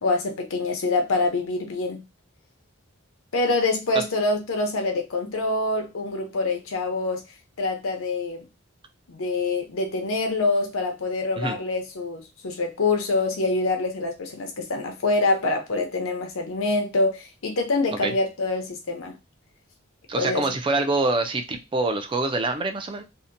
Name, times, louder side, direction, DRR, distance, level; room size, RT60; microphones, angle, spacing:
voice 1, 0.0-2.0 3.3-7.2 7.6-8.4 9.1-19.1 20.1-20.4, left 3 dB, 90° left, 4 dB, 0.7 m, -25 dB
voice 2, 20.1-23.0, right 2 dB, 25° right, 6 dB, 0.4 m, -25 dB
2.7 x 2.1 x 2.5 m, 0.25 s
head